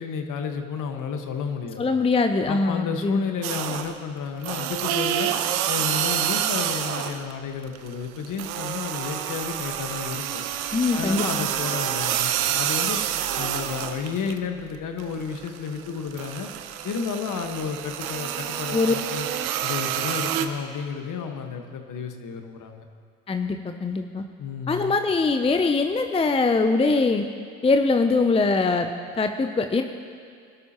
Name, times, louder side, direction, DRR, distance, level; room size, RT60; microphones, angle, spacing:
voice 1, 0.0-1.8 2.5-5.3 5.7-10.4 10.9-13.0 13.3-16.5 16.8-19.3 19.6-22.8 24.4-24.9, left 6 dB, 45° left, 5 dB, 1.6 m, -32 dB
voice 2, 1.8-3.2 10.7-11.3 18.7-18.9 23.3-24.2 24.7-27.3 27.6-29.8, left 3 dB, 15° left, 7 dB, 0.6 m, -22 dB
sound 1, 3.4-4.0 4.4-7.3 7.6-14.4 14.8-20.5, right 10 dB, 75° right, 0.9 m, -28 dB
24.5 x 12.5 x 3.0 m, 2.1 s
hypercardioid pair, 65°, 42 cm